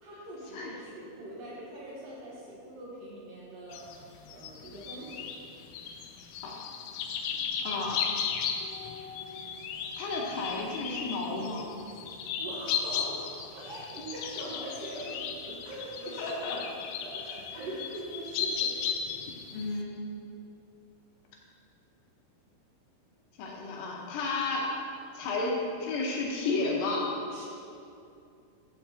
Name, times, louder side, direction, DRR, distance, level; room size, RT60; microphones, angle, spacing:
voice 1, 0.0-3.9 4.3-5.3 7.3-7.4 12.4-16.7 17.0-18.8 27.3-27.4, right 1 dB, 70° right, -5 dB, 2.2 m, -42 dB
sound 1, 3.7-19.8, left 7 dB, 85° left, 3.2 m, -36 dB
voice 2, 7.6-8.0 10.0-11.7 15.7-15.8 16.2-16.6 17.5-17.7 19.5-20.1 23.4-24.7 25.1-27.0, left 3 dB, 70° left, -2 dB, 2.9 m, -32 dB
13.5 x 7.6 x 2.8 m, 2.6 s
omnidirectional pair, 5.5 m